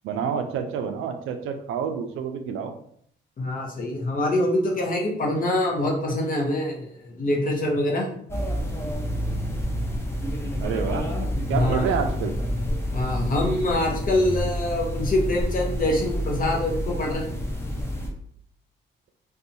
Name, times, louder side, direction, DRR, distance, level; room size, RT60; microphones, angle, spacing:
voice 1, 0.0-2.7 10.6-11.1 11.5-12.4, right 7 dB, 85° right, 6 dB, 0.4 m, -28 dB
voice 2, 3.4-8.1 11.5-11.8 12.9-17.3, left 1 dB, 45° left, 0 dB, 0.8 m, -25 dB
sound 1, 8.3-18.1, equal, 15° left, 0.6 m, -28 dB
2.6 x 2.3 x 2.7 m, 0.64 s
cardioid pair, 90°, 20 cm